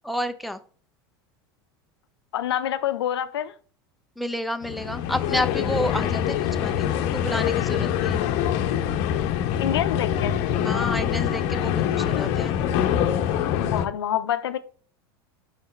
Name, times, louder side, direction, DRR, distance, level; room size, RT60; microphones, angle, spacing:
voice 1, 0.0-0.6 4.2-8.2 10.6-12.6, left 1 dB, ahead, 0.7 m, -30 dB
voice 2, 2.3-3.5 9.6-10.3 13.6-14.6, left 10 dB, 85° left, 0.6 m, -27 dB
sound 1, 4.6-13.9, left 10 dB, 60° left, 0.8 m, -24 dB
5.6 x 4.9 x 4.3 m
hypercardioid pair, 95°, 13 cm